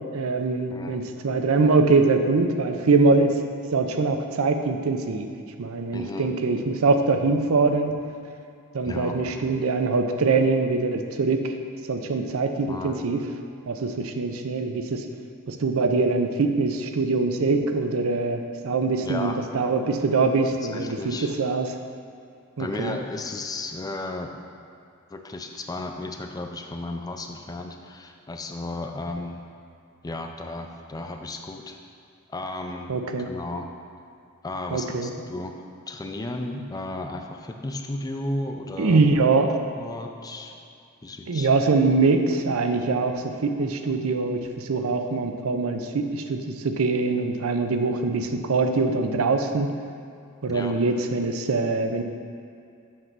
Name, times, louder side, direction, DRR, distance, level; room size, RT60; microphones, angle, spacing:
voice 1, 0.0-3.4 3.7-5.3 5.6-8.0 8.7-11.5 11.9-13.2 13.7-15.0 15.5-21.7 22.6-23.0 32.9-33.3 34.7-35.1 38.8-39.6 41.3-49.7 50.4-52.0, right 3 dB, 75° right, 6 dB, 0.5 m, -23 dB
voice 2, 0.7-1.0 5.9-6.3 8.8-9.4 12.7-13.1 19.0-19.5 20.6-21.3 22.6-24.3 25.1-29.4 30.0-31.8 32.3-32.9 33.2-33.7 34.4-35.6 35.9-39.0 39.8-40.5 41.0-41.5 48.3-48.4 50.5-50.8, left 2 dB, 20° left, 4 dB, 0.4 m, -34 dB
7.3 x 3.3 x 5.9 m, 2.5 s
head